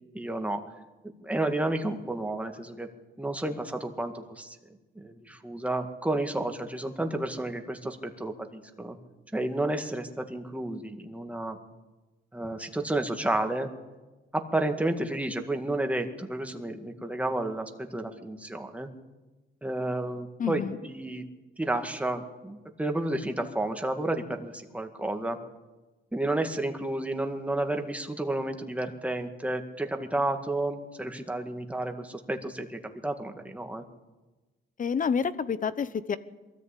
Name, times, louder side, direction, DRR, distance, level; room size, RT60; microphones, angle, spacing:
voice 1, 0.1-0.6 1.2-2.9 3.2-4.6 5.0-9.0 9.3-11.6 12.3-13.7 14.3-18.9 19.6-21.2 21.6-25.4 26.1-33.8, right 1 dB, 5° right, 5 dB, 2.0 m, -31 dB
voice 2, 20.4-20.8 34.8-36.2, left 6 dB, 40° left, 15 dB, 1.0 m, -28 dB
22.5 x 14.0 x 8.5 m, 1.2 s
cardioid pair, 105°, 21 cm